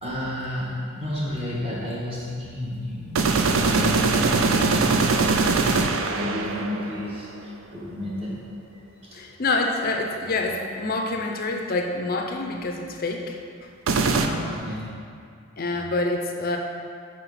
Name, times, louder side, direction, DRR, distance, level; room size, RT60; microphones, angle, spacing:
voice 1, 0.0-5.1 5.4-9.2 13.9-14.9, left 1 dB, 25° right, -8 dB, 1.3 m, -32 dB
sound 1, 3.2-7.2 13.9-14.3, right 4 dB, 60° right, 0.4 m, -22 dB
voice 2, 9.1-13.7 15.6-16.6, left 2 dB, 40° left, 2 dB, 0.5 m, -27 dB
5.6 x 5.0 x 4.1 m, 2.3 s
head